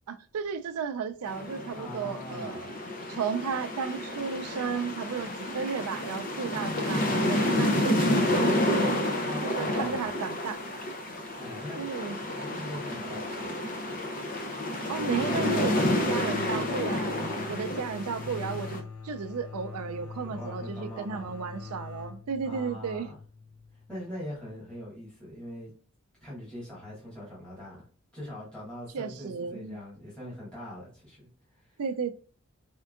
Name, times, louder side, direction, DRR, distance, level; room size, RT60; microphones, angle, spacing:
voice 1, 0.1-2.7 3.1-9.1 9.4-10.6 11.8-12.2 14.9-17.1 17.5-23.1 28.9-29.8 31.8-32.1, right 6 dB, 85° right, 0.4 m, -34 dB
sound 1, 1.3-18.8, left 1 dB, 40° left, 0.6 m, -30 dB
voice 2, 1.7-2.7 9.2-10.1 11.3-11.8 12.4-13.6 15.6-16.3 17.1-17.6 20.2-21.3 22.4-23.2 23.7-25.7 26.2-27.9 28.1-31.8, equal, 5° left, 1.6 m, -42 dB
sound 2, 14.9-24.4, left 5 dB, 80° left, 0.7 m, -43 dB
4.3 x 3.6 x 2.4 m
head